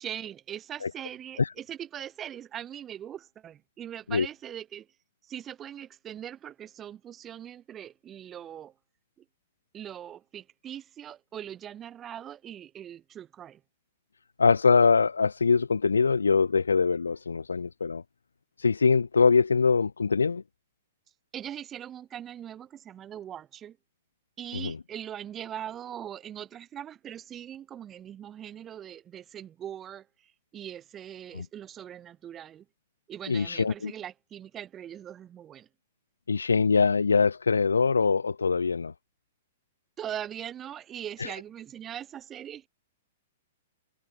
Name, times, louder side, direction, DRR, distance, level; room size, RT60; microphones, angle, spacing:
voice 1, 0.0-4.9 5.2-8.7 9.7-13.6 21.3-23.8 24.4-32.7 33.1-35.7 40.0-42.7, right 10 dB, 25° right, 1.0 m, -41 dB
voice 2, 14.4-18.0 18.6-20.4 24.5-24.8 31.3-31.5 33.3-33.9 36.3-38.9 41.2-41.3, left 5 dB, 80° left, 0.4 m, -23 dB
figure-of-eight pair, 110°, 0 cm